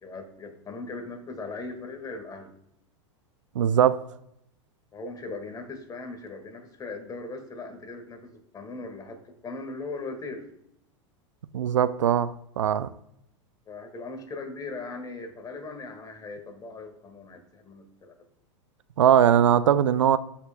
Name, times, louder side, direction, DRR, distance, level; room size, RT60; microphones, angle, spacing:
voice 1, 0.0-2.5 4.9-10.4 13.7-18.1, left 3 dB, 25° left, 1.7 m, -39 dB
voice 2, 3.6-4.0 11.5-12.9 19.0-20.2, right 9 dB, 90° right, 0.4 m, -20 dB
13.0 x 5.8 x 2.2 m
hypercardioid pair, 105°, 16 cm